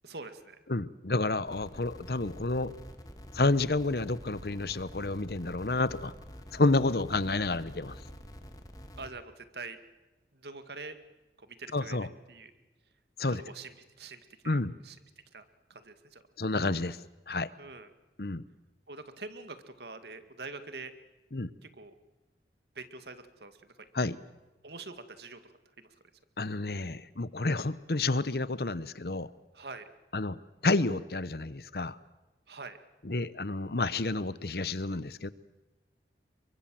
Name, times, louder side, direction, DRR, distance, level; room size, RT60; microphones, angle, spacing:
voice 1, 0.0-0.6 9.0-9.8 10.3-11.0 11.4-12.0 12.3-12.5 13.3-15.0 15.3-16.2 17.6-17.9 18.9-20.9 21.6-21.9 22.8-23.6 24.6-26.0 29.5-29.9 32.5-32.8, right 3 dB, 70° right, 9 dB, 2.1 m, -45 dB
voice 2, 0.7-2.7 3.3-6.1 6.5-8.0 11.7-12.1 13.2-13.4 14.5-14.8 16.4-17.0 17.3-17.5 18.2-18.4 21.3-21.5 23.9-24.2 26.4-29.3 30.1-30.4 30.6-32.0 33.0-35.3, left 2 dB, 60° left, 16 dB, 1.0 m, -30 dB
sound 1, 1.5-9.1, equal, 20° left, 2.2 m, -48 dB
28.0 x 23.0 x 7.8 m, 1.1 s
head